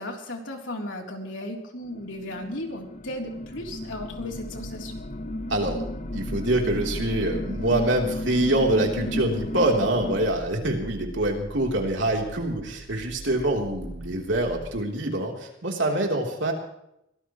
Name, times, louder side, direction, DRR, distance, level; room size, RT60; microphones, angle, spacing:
voice 1, 0.0-5.0, left 1 dB, 80° left, 1 dB, 3.7 m, -35 dB
sound 1, 1.8-10.3, left 1 dB, 40° left, 1.0 m, -34 dB
sound 2, 3.4-14.7, right 1 dB, 45° right, 7.6 m, -39 dB
voice 2, 5.5-5.8 6.1-16.5, right 1 dB, 70° right, 1 dB, 3.7 m, -25 dB
24.5 x 18.5 x 3.2 m, 0.80 s
head